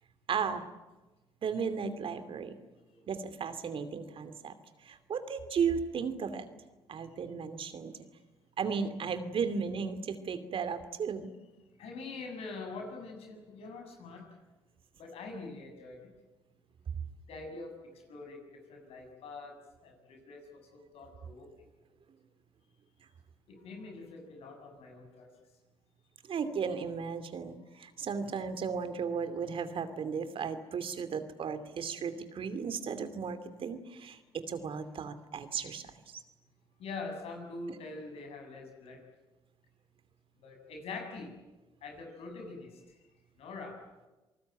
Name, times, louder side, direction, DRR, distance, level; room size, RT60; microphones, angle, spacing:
voice 1, 0.3-0.7 1.4-2.5 3.1-4.5 4.8-6.4 6.9-7.9 8.6-11.3 26.3-36.2, right 6 dB, 60° right, 11 dB, 2.7 m, -35 dB
voice 2, 11.8-14.3 15.0-16.0 17.3-18.4 18.7-19.6 19.8-21.5 23.5-25.3 36.8-39.0 40.4-41.3 41.8-42.8 43.4-43.8, left 3 dB, 75° left, 4 dB, 7.4 m, -44 dB
27.0 x 19.5 x 9.3 m, 1.1 s
supercardioid pair, 60°, 10 cm